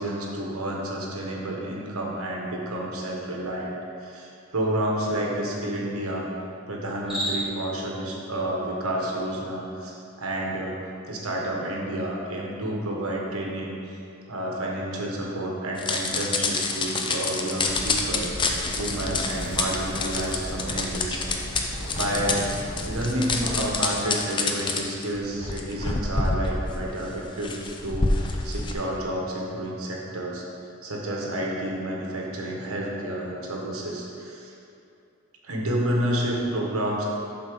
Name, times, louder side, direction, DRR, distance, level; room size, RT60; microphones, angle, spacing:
voice 1, 0.0-3.8 4.0-6.3 6.7-10.8 11.1-14.0 14.3-22.4 22.8-27.5 27.8-28.1 28.4-30.4 30.8-34.5 35.4-37.1, right 1 dB, 75° right, -2 dB, 1.2 m, -30 dB
Cricket, 6.9-7.7, right 1 dB, ahead, 1.4 m, -30 dB
sound 1, 15.8-28.7, left 3 dB, 20° left, 0.4 m, -27 dB
sound 2, 17.6-23.7, equal, 85° left, 1.3 m, -35 dB
7.3 x 4.0 x 6.2 m, 2.7 s
head